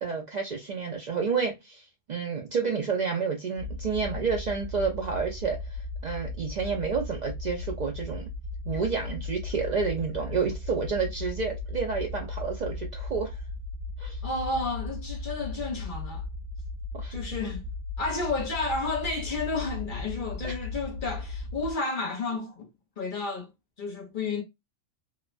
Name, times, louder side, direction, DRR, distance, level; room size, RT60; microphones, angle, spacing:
voice 1, 0.0-8.3 8.7-13.4 14.0-14.2 16.9-17.1 20.4-20.5, right 5 dB, 85° right, 0.4 m, -30 dB
sound 1, 3.6-21.7, left 2 dB, 45° right, 0.9 m, -37 dB
voice 2, 14.2-16.2 17.1-17.7 18.0-22.7 23.0-23.5 23.8-24.4, left 3 dB, 50° left, 0.7 m, -31 dB
3.0 x 2.1 x 2.3 m
omnidirectional pair, 1.3 m